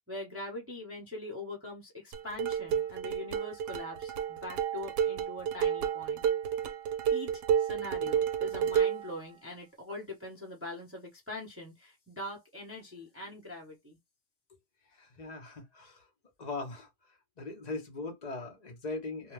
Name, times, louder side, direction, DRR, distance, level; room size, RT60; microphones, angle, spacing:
voice 1, 0.1-6.2 7.1-14.0, left 1 dB, 10° right, 0.8 m, -42 dB
sound 1, 2.1-9.1, right 8 dB, 80° right, 1.2 m, -30 dB
voice 2, 15.0-16.1 16.4-16.9 17.4-19.3, left 3 dB, 35° left, 0.7 m, -40 dB
2.8 x 2.2 x 3.2 m
omnidirectional pair, 1.8 m